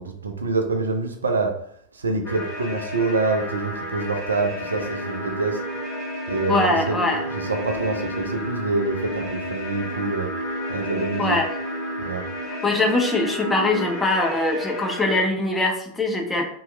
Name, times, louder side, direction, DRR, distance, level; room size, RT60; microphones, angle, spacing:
voice 1, 0.0-1.6 1.9-5.6 6.3-7.0 7.3-10.3 10.7-11.4 12.0-12.2, right 3 dB, 75° right, 4 dB, 0.4 m, -26 dB
sound 1, 2.2-15.2, left 1 dB, 35° left, 1.2 m, -33 dB
sound 2, 4.3-13.9, equal, 80° left, 0.7 m, -34 dB
voice 2, 6.5-7.2 11.2-11.5 12.5-16.4, left 2 dB, 10° left, 1 dB, 0.5 m, -22 dB
2.8 x 2.3 x 3.1 m, 0.64 s
figure-of-eight pair, 90°, 0 cm